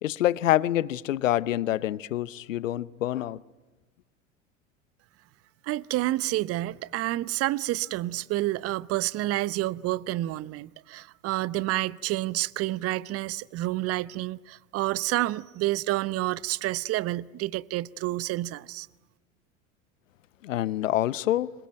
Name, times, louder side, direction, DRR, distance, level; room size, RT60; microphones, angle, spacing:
voice 1, 0.0-3.4 20.4-21.5, left 13 dB, 70° left, 0.8 m, -26 dB
voice 2, 5.6-18.9, right 17 dB, 35° right, 0.8 m, -29 dB
26.5 x 22.5 x 9.1 m
figure-of-eight pair, 80°, 40 cm